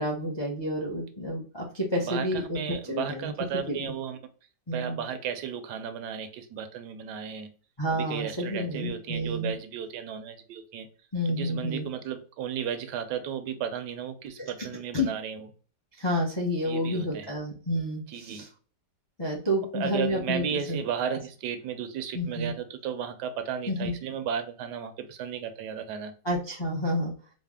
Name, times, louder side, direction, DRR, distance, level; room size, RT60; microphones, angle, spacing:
voice 1, 0.0-2.6 2.9-3.3 3.7-3.9 4.7-5.0 7.8-9.5 11.1-11.9 14.4-14.7 14.9-15.1 16.0-18.5 19.2-20.8 21.1-21.2 22.1-22.5 23.7-23.9 26.2-27.1, equal, 40° left, -2 dB, 0.3 m, -30 dB
voice 2, 2.0-4.2 4.7-7.5 7.9-10.9 11.3-15.5 16.7-17.3 18.1-18.4 19.7-26.1, right 8 dB, 75° right, 8 dB, 1.1 m, -34 dB
4.1 x 2.0 x 3.4 m, 0.40 s
omnidirectional pair, 1.8 m